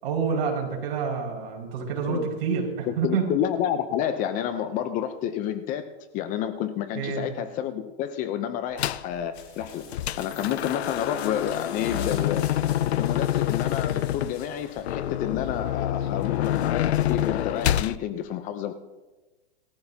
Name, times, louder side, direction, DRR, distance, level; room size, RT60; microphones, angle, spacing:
voice 1, 0.0-3.3 7.0-7.3, right 5 dB, 60° right, -2 dB, 5.7 m, -28 dB
voice 2, 2.9-9.9 10.2-12.4 12.9-18.7, left 10 dB, 25° left, 10 dB, 0.7 m, -30 dB
sound 1, 8.8-9.1 9.6-18.0, left 12 dB, 90° left, 0.6 m, -27 dB
sound 2, 9.3-14.9, left 7 dB, 55° left, 3.7 m, -47 dB
20.0 x 14.0 x 2.9 m, 1.2 s
hypercardioid pair, 145°, 31 cm